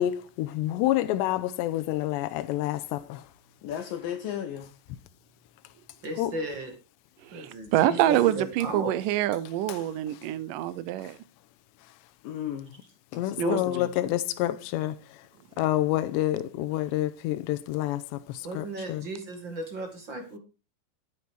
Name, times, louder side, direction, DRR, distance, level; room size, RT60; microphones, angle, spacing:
voice 1, 0.0-3.2 6.2-6.3 13.2-15.0 15.6-19.0, left 14 dB, 90° left, 3.0 m, -28 dB
voice 2, 3.6-4.7 12.2-12.7 13.1-13.9, left 10 dB, 70° left, 2.2 m, -33 dB
voice 3, 6.0-6.7 7.3-9.0 18.4-20.4, right 2 dB, 35° right, 2.0 m, -36 dB
voice 4, 7.2-11.2 13.4-13.6, right 13 dB, 80° right, 1.9 m, -26 dB
13.0 x 9.6 x 4.7 m
omnidirectional pair, 4.9 m